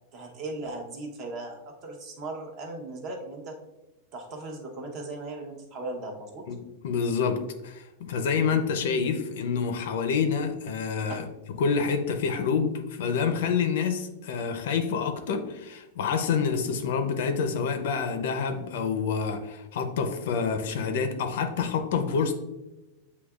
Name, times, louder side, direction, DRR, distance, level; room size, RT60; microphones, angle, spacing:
voice 1, 0.1-3.6 4.1-6.4, right 2 dB, 30° right, 1 dB, 0.8 m, -38 dB
voice 2, 6.8-11.2 11.6-22.3, left 6 dB, 65° left, 7 dB, 0.6 m, -27 dB
8.0 x 2.8 x 2.4 m, 1.0 s
supercardioid pair, 170°, 0 cm